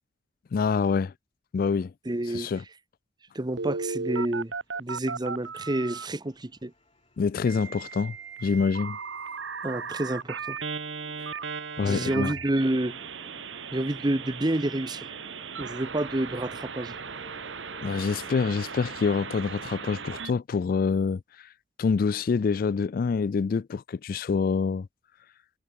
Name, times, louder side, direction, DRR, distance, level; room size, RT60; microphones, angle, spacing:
voice 1, 0.5-1.1 1.5-1.9 2.3-2.6 7.2-8.2 8.4-9.0 11.2-11.3 11.8-12.3 17.8-21.5 21.8-24.9, left 5 dB, 50° left, 0.3 m, -26 dB
voice 2, 2.1-2.5 3.3-4.5 4.8-6.7 9.6-10.6 11.8-13.0 13.7-15.1 15.6-17.0, right 1 dB, 25° right, 0.9 m, -29 dB
Telephone, 3.6-6.1 7.5-20.3, right 5 dB, 90° right, 1.5 m, -37 dB
sound 1, 4.4-19.6, left 2 dB, 30° left, 7.4 m, -56 dB
head